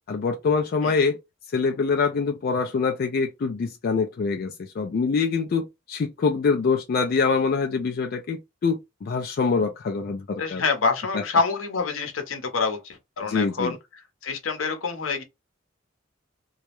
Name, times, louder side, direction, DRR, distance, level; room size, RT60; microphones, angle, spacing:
voice 1, 0.1-1.2 1.5-10.6 11.1-11.2 13.3-13.8, left 5 dB, 50° left, 0.3 m, -25 dB
voice 2, 10.4-13.8 14.2-15.2, left 4 dB, 80° left, 0.7 m, -26 dB
2.3 x 2.0 x 2.9 m
head